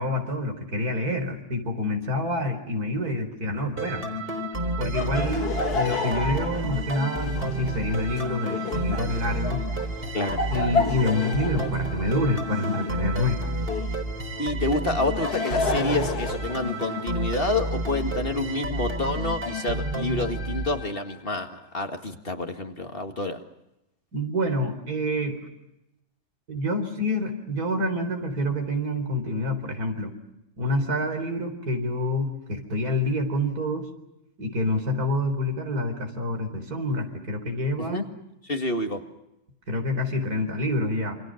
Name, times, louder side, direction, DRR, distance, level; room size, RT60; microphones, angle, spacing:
voice 1, 0.0-4.0 4.8-9.6 10.5-13.4 24.1-25.4 26.5-30.1 30.6-33.9 34.4-38.0 39.7-41.1, left 1 dB, 75° right, 5 dB, 4.8 m, -27 dB
sound 1, 3.8-21.3, right 1 dB, 35° right, 3.6 m, -30 dB
Laughter, 4.9-14.0 14.9-17.2, left 4 dB, 85° left, 2.2 m, -31 dB
voice 2, 14.4-23.4 37.8-38.1 38.4-39.0, left 2 dB, 35° left, 5 dB, 2.1 m, -28 dB
27.5 x 26.5 x 6.4 m, 0.89 s
omnidirectional pair, 1.6 m